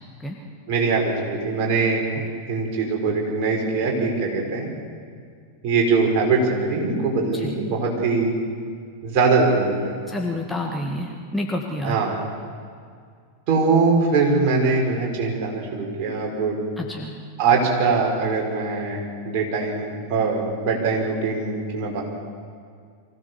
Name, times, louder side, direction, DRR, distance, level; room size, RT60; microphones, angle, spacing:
voice 1, 0.7-2.0 2.5-4.7 5.6-8.3 9.0-9.9 11.8-12.2 13.5-16.6 17.4-22.0, right 4 dB, 40° right, -1 dB, 4.9 m, -22 dB
voice 2, 10.1-12.0 16.8-17.2, left 1 dB, 5° left, 0 dB, 1.8 m, -29 dB
24.5 x 16.0 x 7.1 m, 2.1 s
figure-of-eight pair, 90°, 0 cm